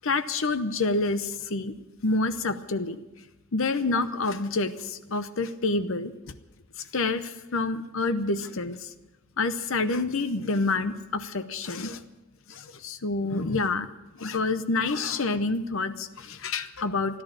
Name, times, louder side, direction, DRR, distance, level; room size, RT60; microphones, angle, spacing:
voice 1, 0.0-1.7 2.0-3.0 3.5-6.1 6.9-8.9 9.4-12.0 12.5-13.9 14.2-17.2, left 3 dB, 60° left, 11 dB, 0.8 m, -28 dB
14.0 x 11.0 x 8.7 m, 1.1 s
head